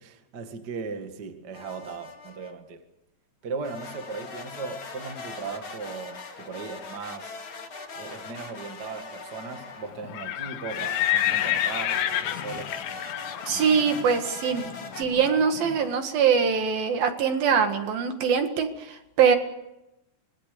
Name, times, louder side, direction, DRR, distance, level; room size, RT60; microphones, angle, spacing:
voice 1, 0.0-2.8 3.4-7.4 7.9-12.8, right 4 dB, 40° right, 1.5 m, -37 dB
sound 1, 1.5-2.5 3.6-10.0 10.7-15.0, left 4 dB, 35° left, 2.5 m, -40 dB
Livestock farm animals working animals, 10.0-15.8, left 12 dB, 85° left, 3.6 m, -29 dB
voice 2, 13.5-14.7 15.0-19.4, right 6 dB, 60° right, 3.3 m, -23 dB
25.5 x 21.0 x 6.8 m
omnidirectional pair, 5.1 m